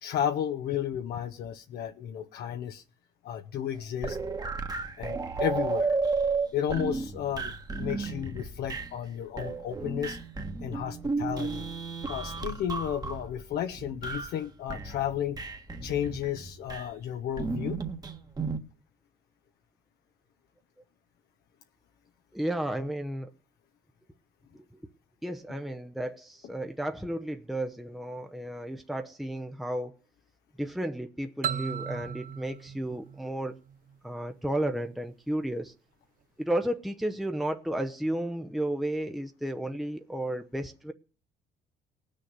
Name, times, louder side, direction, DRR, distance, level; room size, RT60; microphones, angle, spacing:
voice 1, 0.0-2.8 3.2-4.2 5.0-6.0 6.5-10.2 10.6-11.7 12.1-15.4 15.8-17.8, left 10 dB, 70° left, 1.0 m, -33 dB
sound 1, 3.8-9.1 9.4-14.4 14.7-16.9 17.4-18.6, right 4 dB, 25° right, 1.4 m, -33 dB
voice 2, 22.3-23.3 24.5-24.7 25.2-29.9 30.6-33.5 34.0-35.7 36.4-40.9, right 1 dB, ahead, 0.8 m, -33 dB
sound 2, 31.4-34.1, right 8 dB, 55° right, 0.7 m, -36 dB
18.0 x 6.7 x 9.5 m
cardioid pair, 110°, 17 cm